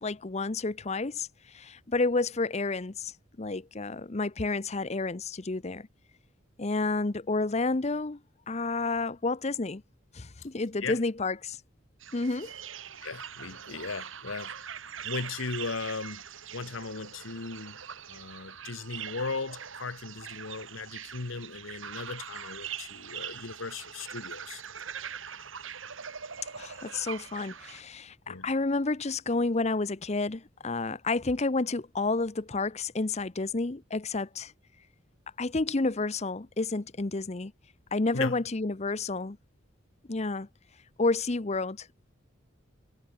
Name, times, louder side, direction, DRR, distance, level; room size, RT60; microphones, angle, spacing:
voice 1, 0.0-5.9 6.6-8.2 8.5-9.8 10.1-11.6 12.1-12.5 26.5-34.5 35.4-37.5 37.9-39.4 40.1-40.5 41.0-42.1, left 3 dB, 35° left, 0.8 m, -30 dB
sound 1, 12.0-27.8, right 8 dB, 80° right, 2.0 m, -42 dB
voice 2, 13.0-14.5 15.0-16.2 16.5-17.8 18.1-24.6 28.3-28.5 38.1-38.4, left 4 dB, 85° left, 1.2 m, -37 dB
head